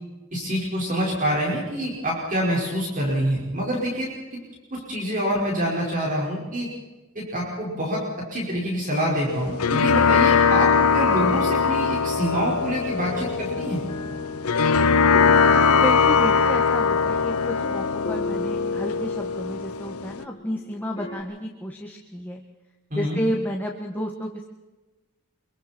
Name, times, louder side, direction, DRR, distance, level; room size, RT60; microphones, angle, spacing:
voice 1, 0.3-4.4 4.7-6.7 7.2-8.0 8.3-13.8 22.9-23.2, equal, 40° right, -3 dB, 5.3 m, -26 dB
sound 1, 9.3-20.2, left 5 dB, 85° left, 0.8 m, -21 dB
sound 2, 13.0-21.2, left 2 dB, 30° left, 5.4 m, -36 dB
voice 2, 15.7-22.4 22.9-24.5, equal, 10° left, 1 dB, 1.6 m, -31 dB
26.0 x 24.0 x 4.5 m, 1.1 s
head